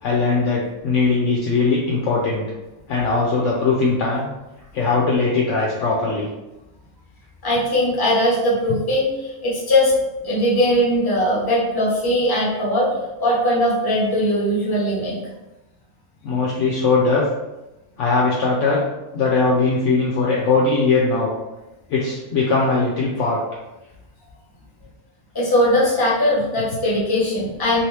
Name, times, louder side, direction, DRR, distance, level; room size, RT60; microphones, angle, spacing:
voice 1, 0.0-2.5 2.9-4.3 4.7-6.3 16.2-17.2 18.0-18.8 19.1-21.3 21.9-23.4, left 3 dB, 65° left, -3 dB, 0.8 m, -20 dB
voice 2, 7.4-9.9 10.2-12.9 13.2-15.2 25.3-27.8, left 1 dB, 20° left, -6 dB, 0.8 m, -20 dB
3.0 x 2.9 x 3.1 m, 1.0 s
omnidirectional pair, 1.6 m